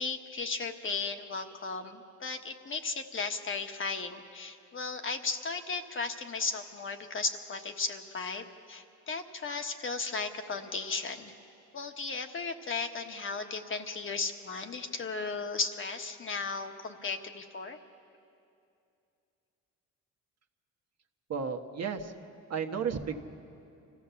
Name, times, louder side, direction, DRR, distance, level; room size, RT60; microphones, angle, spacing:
voice 1, 0.0-11.3 11.7-17.8, left 4 dB, 40° left, 6 dB, 1.3 m, -35 dB
voice 2, 21.3-22.1 22.5-23.2, right 6 dB, 55° right, 4 dB, 1.4 m, -33 dB
25.0 x 15.0 x 7.1 m, 2.6 s
cardioid pair, 90°, 30 cm